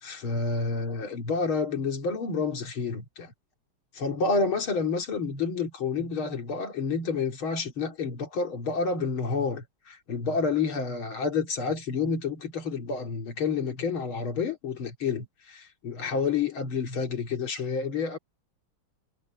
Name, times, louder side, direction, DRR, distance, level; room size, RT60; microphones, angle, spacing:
voice 1, 0.0-3.3 3.9-18.2, left 5 dB, 70° left, 3.4 m, -29 dB
omnidirectional pair, 2.4 m